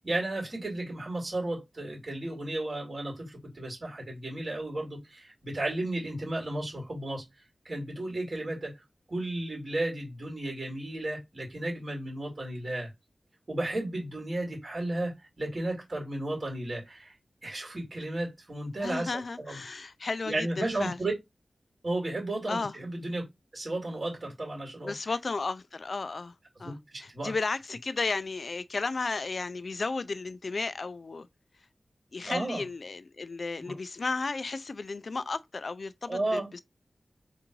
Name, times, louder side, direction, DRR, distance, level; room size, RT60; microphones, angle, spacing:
voice 1, 0.0-7.2 7.6-8.8 9.1-12.9 13.5-17.1 17.4-19.1 19.4-19.6 20.2-21.1 21.8-23.2 23.5-24.9 26.6-27.3 32.2-32.6 33.6-33.8 36.1-36.5, right 1 dB, 45° right, 2.4 m, -33 dB
voice 2, 18.8-21.0 22.5-22.7 24.8-26.3 26.6-31.3 32.1-36.6, left 3 dB, 65° left, 0.4 m, -34 dB
3.8 x 2.5 x 4.6 m
wide cardioid pair, 75°, 0 cm